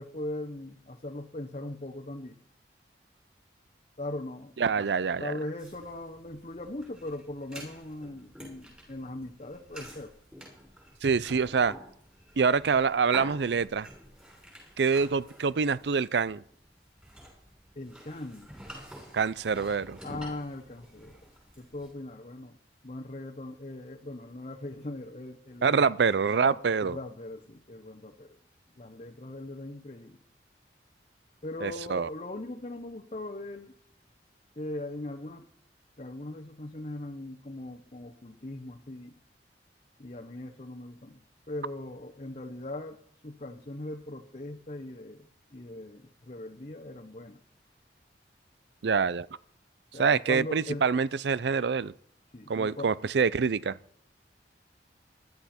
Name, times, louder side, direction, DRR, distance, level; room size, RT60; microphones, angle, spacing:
voice 1, 0.0-2.4 4.0-4.6 5.2-10.1 17.7-18.5 20.0-21.2 21.6-26.0 26.4-28.4 28.7-30.2 31.4-33.7 34.6-35.5 36.0-39.1 40.0-41.2 41.5-43.0 43.2-47.4 49.9-50.8 52.3-52.9, left 1 dB, 40° left, 1.0 m, -40 dB
voice 2, 4.6-5.3 11.0-11.8 12.4-13.9 14.8-16.4 19.1-20.0 25.6-27.0 31.6-32.1 48.8-49.3 50.0-51.9 52.5-53.8, right 5 dB, 70° right, 0.5 m, -26 dB
sound 1, 5.6-21.9, equal, 5° right, 6.3 m, -48 dB
16.0 x 12.0 x 4.4 m
head